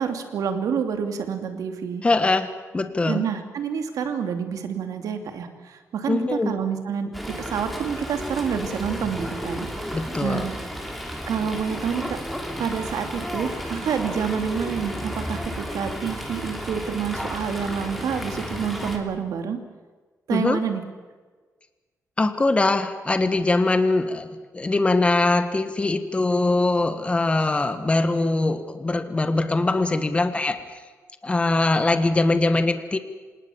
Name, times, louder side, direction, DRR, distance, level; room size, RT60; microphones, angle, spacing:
voice 1, 0.0-2.1 3.0-9.7 10.2-10.5 11.3-12.2 12.6-19.6 20.3-20.8, right 7 dB, 85° right, 6 dB, 2.7 m, -28 dB
voice 2, 2.0-3.2 6.1-6.5 9.9-10.5 20.3-20.6 22.2-24.3 24.5-30.8 31.2-33.0, left 2 dB, 20° left, 10 dB, 1.4 m, -22 dB
Fowl, 7.1-19.0, equal, ahead, 3.1 m, -33 dB
26.5 x 19.5 x 7.3 m, 1.4 s
wide cardioid pair, 135°, 6 cm